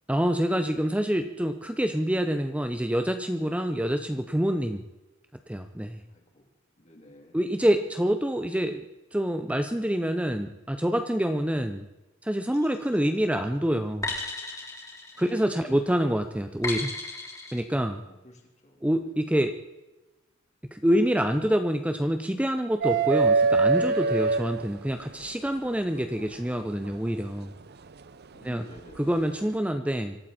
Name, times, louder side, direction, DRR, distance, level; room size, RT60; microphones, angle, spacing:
voice 1, 0.1-4.8 5.5-6.0 7.3-8.8 9.1-11.9 12.2-14.1 15.2-16.9 17.5-18.0 18.8-19.6 20.7-27.5 28.4-28.7 29.0-30.2, equal, 5° right, 7 dB, 0.7 m, -26 dB
voice 2, 6.1-6.5 6.8-7.4 15.1-15.7 18.0-19.1 28.3-29.1, left 1 dB, 35° left, 1 dB, 3.6 m, -51 dB
sound 1, 12.5-12.9 14.0-15.7 16.6-17.6, left 3 dB, 15° left, 4.5 m, -35 dB
sound 2, 22.8-25.2 26.9-27.0 28.8-29.0, right 4 dB, 55° right, 0.7 m, -23 dB
25.0 x 13.0 x 4.3 m, 1.0 s
head